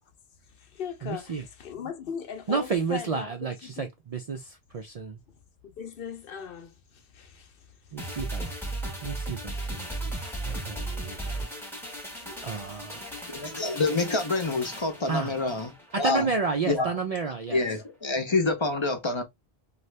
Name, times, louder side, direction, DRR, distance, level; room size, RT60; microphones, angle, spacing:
voice 1, 0.5-3.9 5.6-8.3 9.5-9.6 12.2-13.2, left 7 dB, 65° left, 0.8 m, -40 dB
voice 2, 1.0-1.4 2.5-5.2 7.9-8.5 9.0-11.5 12.4-13.0 15.1-15.4 15.9-17.6, right 5 dB, 55° right, 0.4 m, -31 dB
sound 1, 8.0-16.6 16.9-17.0, right 1 dB, ahead, 0.8 m, -36 dB
voice 3, 13.3-15.7 16.0-16.3 16.7-16.9 17.5-19.2, left 3 dB, 35° left, 0.5 m, -27 dB
2.6 x 2.4 x 3.1 m
omnidirectional pair, 1.1 m